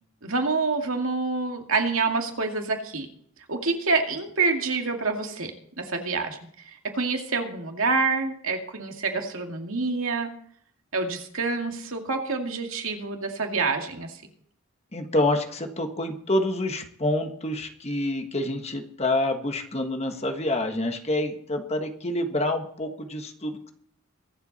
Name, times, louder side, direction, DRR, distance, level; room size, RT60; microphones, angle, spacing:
voice 1, 0.2-3.1 3.5-5.5 5.8-6.4 6.6-10.3 10.9-14.2, right 4 dB, 65° right, 3 dB, 2.3 m, -27 dB
voice 2, 14.9-23.7, left 1 dB, 30° left, 5 dB, 1.3 m, -27 dB
23.0 x 8.0 x 4.2 m, 0.63 s
head